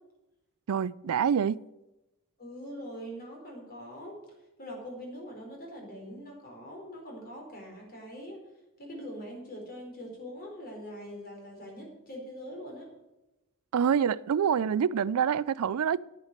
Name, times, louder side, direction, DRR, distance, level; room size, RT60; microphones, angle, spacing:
voice 1, 0.7-1.6 13.7-16.0, right 7 dB, 75° right, 0.4 m, -26 dB
voice 2, 2.4-4.2 4.6-8.4 8.8-12.9, equal, 45° left, 4.2 m, -43 dB
10.5 x 9.1 x 6.4 m
head